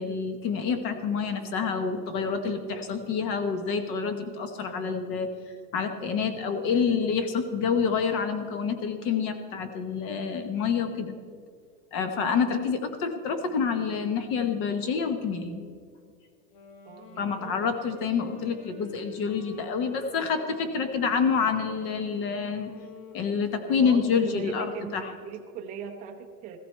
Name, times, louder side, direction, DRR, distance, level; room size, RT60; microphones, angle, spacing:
voice 1, 0.0-5.3 5.7-11.1 11.9-15.6 17.2-22.7 23.1-25.1, left 6 dB, 30° left, 8 dB, 0.9 m, -27 dB
voice 2, 12.1-12.4 16.8-17.5 23.5-26.6, right 7 dB, 15° right, 3 dB, 0.7 m, -40 dB
Wind instrument woodwind instrument, 16.4-24.1, left 4 dB, 75° left, 2.3 m, -48 dB
15.5 x 14.0 x 4.5 m, 2.1 s
supercardioid pair, 165°, 47 cm